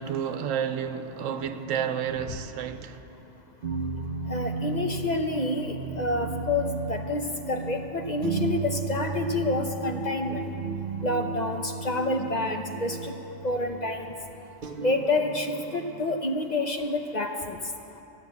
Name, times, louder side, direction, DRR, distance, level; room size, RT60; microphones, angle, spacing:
voice 1, 0.0-3.0, right 8 dB, 90° right, 1.1 m, -30 dB
sound 1, 3.6-16.2, right 4 dB, 50° right, 0.8 m, -34 dB
voice 2, 4.3-10.4 11.0-13.1 13.4-14.1 14.8-17.6, left 2 dB, 40° left, 0.7 m, -28 dB
13.0 x 9.4 x 8.1 m
omnidirectional pair, 1.3 m